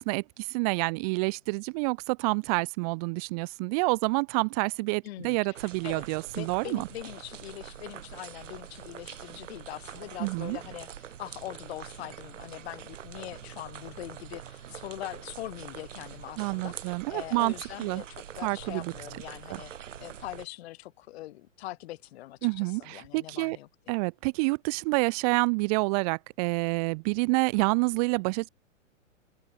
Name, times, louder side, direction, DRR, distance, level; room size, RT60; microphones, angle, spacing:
voice 1, 0.0-6.9 10.2-10.6 16.4-17.5 17.8-18.0 18.4-18.9 19.5-19.6 22.4-23.6 23.9-28.5, right 30 dB, 30° right, 0.6 m, -28 dB
voice 2, 5.0-5.6 5.8-6.0 6.3-23.9, left 16 dB, 50° left, 2.6 m, -42 dB
sound 1, 5.5-20.5, right 9 dB, 65° right, 3.0 m, -44 dB
figure-of-eight pair, 110°, 39 cm